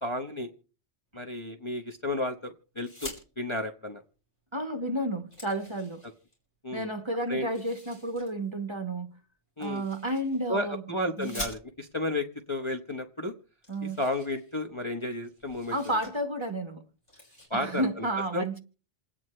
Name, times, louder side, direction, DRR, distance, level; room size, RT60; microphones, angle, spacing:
voice 1, 0.0-0.5 1.1-4.0 6.6-6.8 7.3-7.5 9.6-9.8 10.5-13.3 14.0-15.8 17.5-18.1 18.3-18.4, left 1 dB, 25° left, 0.9 m, -32 dB
sound 1, 2.8-3.2 4.5-4.6 5.0-6.3 7.4-8.3 9.6-10.5 11.2-12.0 12.9-13.0 13.2-13.3 13.6-14.9 15.2-16.1 16.5-16.7 17.0-17.5, left 1 dB, 45° left, 6.8 m, -45 dB
voice 2, 4.5-6.0 6.7-9.1 9.6-10.8 11.2-11.4 13.7-14.0 15.7-16.8 17.5-18.6, right 1 dB, 25° right, 1.2 m, -31 dB
28.0 x 9.3 x 3.2 m
omnidirectional pair, 1.2 m